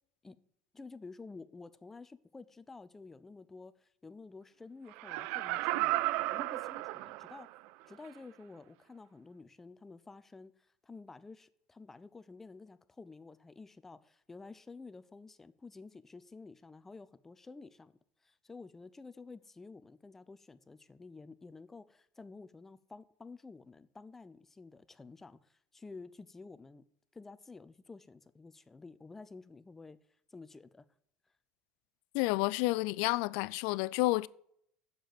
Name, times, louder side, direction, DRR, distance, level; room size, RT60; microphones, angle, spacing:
voice 1, 0.7-6.0 6.3-7.5 7.9-10.5 10.8-17.9 18.2-26.8 27.1-30.0 30.3-30.8, left 3 dB, 15° left, 0.6 m, -51 dB
Laughter, 4.9-7.6 8.0-8.1, right 18 dB, 70° right, 0.3 m, -34 dB
voice 2, 32.1-34.3, left 21 dB, 75° left, 0.4 m, -30 dB
7.9 x 6.7 x 7.5 m
cardioid pair, 130°, 2 cm